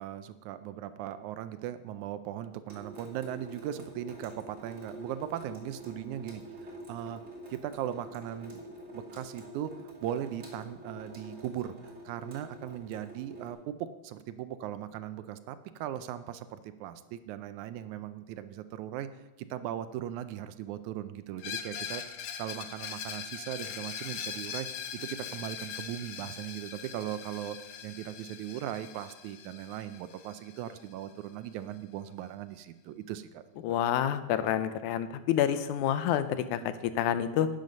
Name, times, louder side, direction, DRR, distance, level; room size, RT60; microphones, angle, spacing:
voice 1, 0.0-7.2 7.5-19.1 19.4-22.0 22.4-24.7 24.9-27.6 27.8-33.8, right 11 dB, 85° right, 11 dB, 2.0 m, -38 dB
Water tap faucet / Sink (filling or washing) / Drip, 2.7-13.5, right 1 dB, 25° right, 2.4 m, -47 dB
Screech, 21.4-31.0, left 8 dB, 70° left, 1.9 m, -41 dB
voice 2, 33.6-37.5, left 10 dB, 90° left, 12 dB, 2.2 m, -28 dB
11.5 x 9.2 x 5.3 m, 1.1 s
omnidirectional pair, 3.4 m